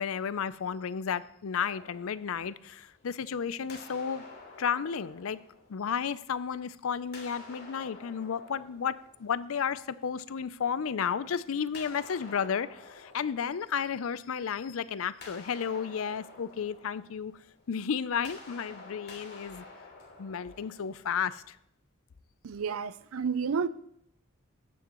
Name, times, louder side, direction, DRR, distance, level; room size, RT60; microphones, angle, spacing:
voice 1, 0.0-4.2 4.6-5.4 5.7-17.3 17.7-19.6 20.2-21.6, left 7 dB, 70° left, 0.5 m, -33 dB
sound 1, 1.6-3.3 3.7-6.5 7.0-9.9 11.7-14.5 14.8-21.5, left 3 dB, 50° left, 3.0 m, -51 dB
voice 2, 22.4-23.7, right 6 dB, 75° right, 0.5 m, -30 dB
14.5 x 9.4 x 3.0 m
head